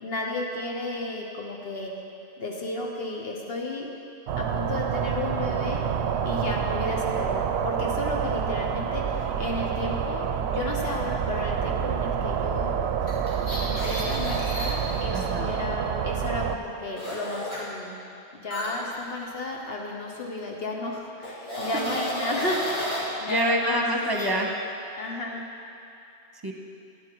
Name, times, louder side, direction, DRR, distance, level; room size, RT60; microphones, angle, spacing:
voice 1, 0.0-2.0 2.4-3.9 4.4-5.9 6.2-12.7 13.6-18.0 18.4-23.9 25.0-25.5, left 2 dB, 65° left, -1 dB, 1.2 m, -33 dB
sound 1, 4.3-16.6, right 7 dB, 75° right, 0.8 m, -28 dB
sound 2, 13.0-15.0 17.0-17.6 18.5-19.9 20.1-20.4 21.2-23.1 24.0-24.3, equal, 80° left, 2.8 m, -32 dB
voice 2, 15.1-15.5 23.3-24.5 26.4-26.5, equal, 20° right, 0 dB, 1.0 m, -26 dB
12.0 x 9.8 x 4.5 m, 2.6 s
omnidirectional pair, 1.1 m